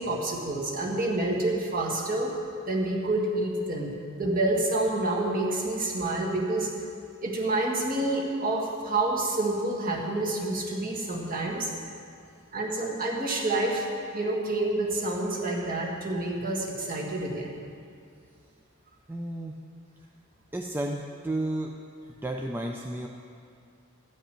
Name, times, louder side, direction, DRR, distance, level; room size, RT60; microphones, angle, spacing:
voice 1, 0.0-2.3 2.7-6.7 7.2-11.7 12.5-13.9 14.1-17.6, right 2 dB, 40° right, -2 dB, 1.8 m, -28 dB
voice 2, 19.1-19.6 20.5-21.8 22.2-23.1, right 1 dB, 10° right, 1 dB, 0.4 m, -32 dB
13.0 x 5.4 x 8.9 m, 2.4 s
head